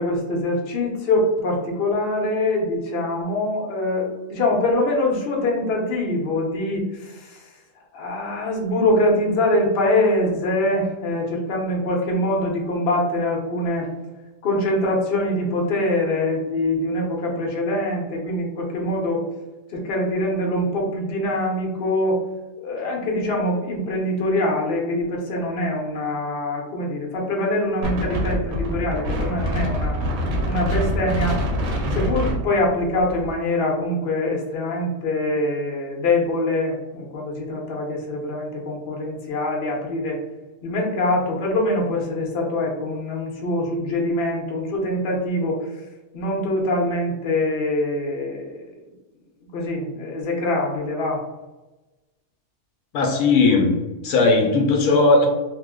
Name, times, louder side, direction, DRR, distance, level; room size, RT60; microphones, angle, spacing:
voice 1, 0.0-7.4 7.9-13.9 14.4-19.2 19.7-22.2 22.6-30.0 30.5-31.4 31.9-40.2 40.6-45.7 46.1-48.7 49.5-51.2, left 1 dB, 50° left, -1 dB, 0.8 m, -24 dB
Wind, 27.8-33.3, equal, 75° right, 1.2 m, -25 dB
voice 2, 52.9-53.7 54.0-55.3, left 3 dB, 75° left, 1 dB, 1.0 m, -17 dB
2.8 x 2.0 x 3.5 m, 1.1 s
omnidirectional pair, 1.5 m